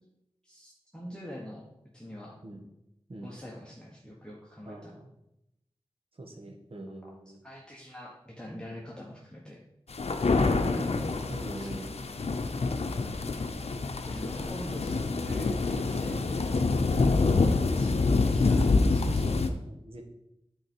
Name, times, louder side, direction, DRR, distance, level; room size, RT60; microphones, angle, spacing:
voice 1, 0.4-1.7 1.9-2.4 3.2-4.9 7.0-7.1 7.4-9.6 11.5-11.9 14.1-16.7 17.8-17.9 18.1-19.5, equal, 10° left, -4 dB, 1.2 m, -44 dB
voice 2, 4.7-5.1 6.2-7.4 10.2-11.9 16.9-17.1 19.4-20.0, right 1 dB, 65° right, 1 dB, 1.4 m, -42 dB
sound 1, 9.9-19.5, left 3 dB, 85° left, 0.6 m, -26 dB
9.7 x 4.6 x 4.5 m, 0.84 s
wide cardioid pair, 60°, 10 cm